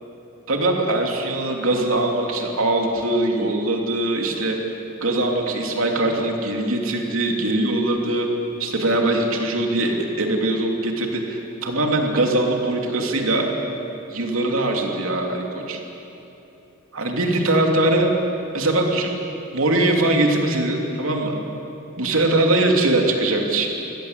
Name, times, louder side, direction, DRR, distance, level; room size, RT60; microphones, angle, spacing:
voice 1, 0.5-4.6 5.0-8.3 8.6-13.5 14.1-15.8 16.9-18.1 18.5-19.1 19.5-21.3 22.0-23.7, right 2 dB, 75° right, 1 dB, 3.0 m, -21 dB
25.0 x 17.0 x 8.3 m, 3.0 s
head